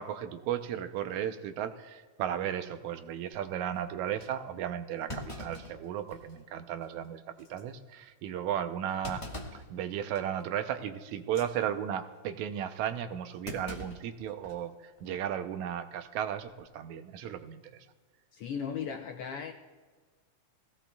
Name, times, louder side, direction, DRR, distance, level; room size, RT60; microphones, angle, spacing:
voice 1, 0.0-9.2 9.5-17.9, right 10 dB, 85° right, 9 dB, 2.1 m, -35 dB
Thump thud, 4.2-4.3 5.1-6.4 6.8-6.9 7.4-7.6 9.0-9.7 10.1-10.4 11.2-11.5 13.4-14.7 15.0-15.1 16.2-16.5, left 1 dB, 25° left, 0.7 m, -43 dB
voice 2, 18.3-19.5, left 7 dB, 70° left, 3 dB, 1.4 m, -36 dB
20.5 x 16.5 x 2.3 m, 1.5 s
omnidirectional pair, 3.3 m